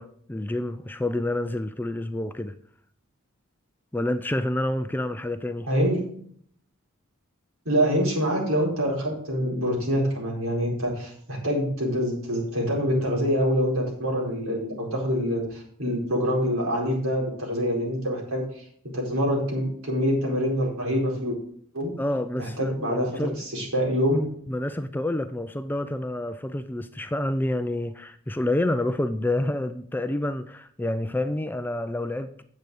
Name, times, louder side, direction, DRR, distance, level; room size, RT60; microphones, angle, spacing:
voice 1, 0.0-2.5 3.9-5.7 22.0-23.5 24.5-32.4, left 1 dB, 10° left, 0.3 m, -28 dB
voice 2, 5.7-6.0 7.7-18.6 18.9-21.4 21.7-21.9 22.4-24.2, equal, 70° right, 4.3 m, -25 dB
9.4 x 7.8 x 4.8 m
head